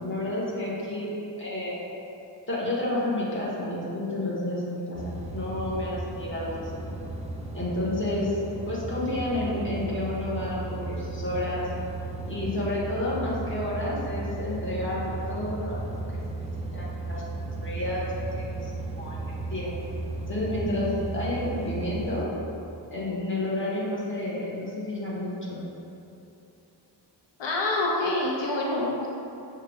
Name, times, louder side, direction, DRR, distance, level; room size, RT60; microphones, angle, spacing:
voice 1, 0.0-1.8 2.5-6.9 7.5-11.7 12.3-15.8 16.4-16.5 16.7-18.1 18.3-19.7 20.3-22.3 22.9-25.6, left 1 dB, 25° left, -7 dB, 1.1 m, -30 dB
sound 1, 4.9-22.2, right 2 dB, 20° right, 0.3 m, -35 dB
voice 2, 27.4-29.1, left 2 dB, 80° left, -3 dB, 0.6 m, -26 dB
6.5 x 2.3 x 3.4 m, 2.8 s
wide cardioid pair, 105°, 43 cm